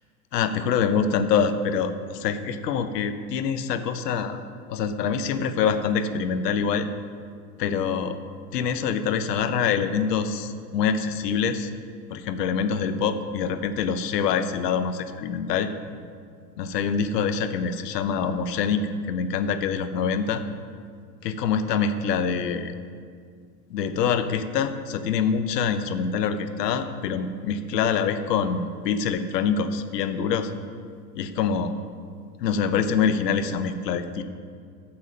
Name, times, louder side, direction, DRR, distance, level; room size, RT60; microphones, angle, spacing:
voice 1, 0.3-4.4 4.7-6.9 7.6-8.2 8.5-11.7 12.1-15.7 16.6-20.4 21.2-22.7 23.7-30.5 31.1-31.7 32.4-34.2, left 6 dB, 70° left, 10 dB, 0.9 m, -25 dB
11.5 x 7.2 x 5.2 m, 2.1 s
hypercardioid pair, 90°, 49 cm